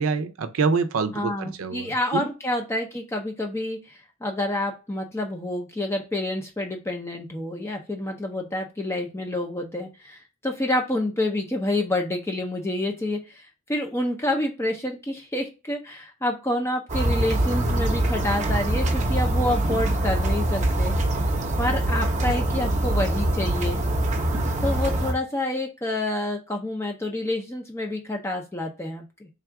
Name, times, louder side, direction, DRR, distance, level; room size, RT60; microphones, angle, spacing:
voice 1, 0.0-2.3, right 5 dB, 85° right, 0.5 m, -26 dB
voice 2, 1.1-21.3 21.6-23.8 24.6-29.3, left 1 dB, 15° left, 0.5 m, -28 dB
sound 1, 16.9-25.1, right 1 dB, 35° right, 0.7 m, -24 dB
3.5 x 2.3 x 4.5 m
head